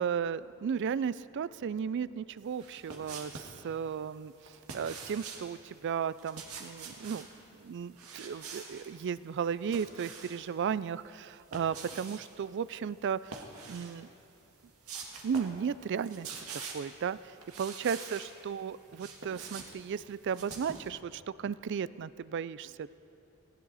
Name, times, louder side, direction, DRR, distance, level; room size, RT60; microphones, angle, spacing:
voice 1, 0.0-7.3 7.5-14.1 15.2-16.3 16.7-22.9, right 7 dB, 55° right, 18 dB, 0.3 m, -35 dB
sound 1, 2.5-3.6 4.4-5.5 6.1-7.3 7.9-8.9 9.3-10.5 11.3-12.2 13.2-14.0 14.4-14.5 14.8-15.6 15.9-16.9 17.4-18.3 18.7-20.9, right 5 dB, 80° right, 1.8 m, -45 dB
19.0 x 15.5 x 4.1 m, 2.8 s
head